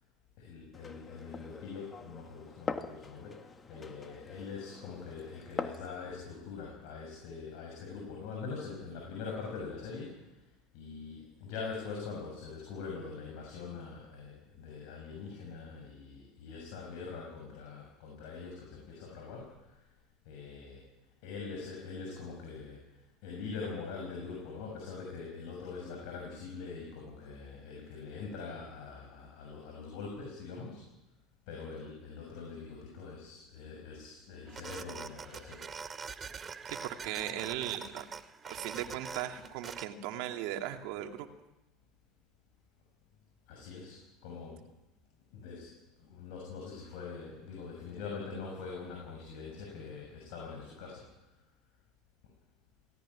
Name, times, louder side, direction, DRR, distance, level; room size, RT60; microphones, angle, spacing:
voice 1, 0.4-10.2 10.7-19.6 20.2-20.8 21.2-22.8 23.2-30.8 31.5-35.6 43.5-44.6 45.3-45.7 46.1-51.0, left 5 dB, 70° left, -1 dB, 6.6 m, -43 dB
Glass, 0.7-5.9, left 4 dB, 25° left, 1.7 m, -43 dB
sound 1, 34.5-39.9, right 6 dB, 25° right, 1.2 m, -44 dB
voice 2, 36.7-38.1 38.5-41.3, right 12 dB, 70° right, 6 dB, 2.4 m, -38 dB
18.0 x 17.5 x 9.8 m, 0.95 s
supercardioid pair, 110°, 0 cm